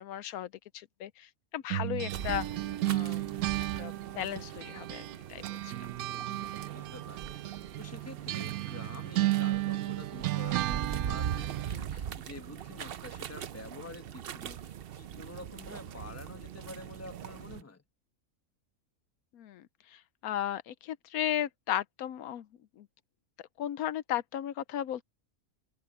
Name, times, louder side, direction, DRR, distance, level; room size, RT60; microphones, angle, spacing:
voice 1, 0.0-2.5 2.9-3.2 3.6-5.0 5.3-5.8 19.3-22.5 22.8-22.9 23.6-25.0, left 11 dB, 85° left, 1.1 m, -35 dB
sound 1, 1.7-5.2 5.4-11.8, right 16 dB, 80° right, 1.1 m, -34 dB
sound 2, 2.1-17.6, right 9 dB, 55° right, 0.7 m, -41 dB
voice 2, 6.0-7.4 7.8-17.8, left 3 dB, 10° left, 1.1 m, -48 dB
omnidirectional pair, 1.5 m